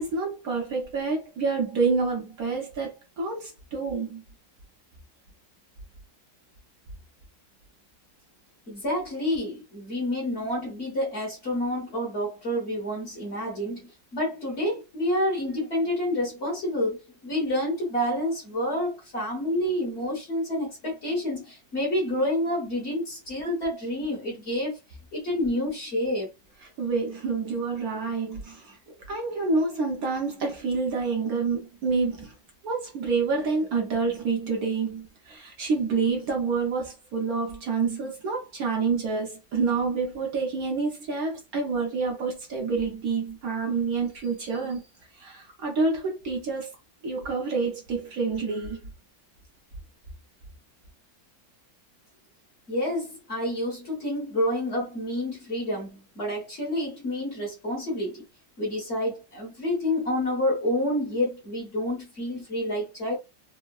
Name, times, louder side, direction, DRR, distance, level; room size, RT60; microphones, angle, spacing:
voice 1, 0.0-4.2 26.8-28.8 29.1-32.3 32.6-44.8 45.1-46.7 47.0-48.8, right 4 dB, 65° right, 1.1 m, -28 dB
voice 2, 8.7-13.9 14.1-24.8 25.1-26.3 52.7-58.2 58.6-63.2, left 1 dB, 40° left, 1.3 m, -28 dB
3.5 x 2.1 x 2.3 m
omnidirectional pair, 1.9 m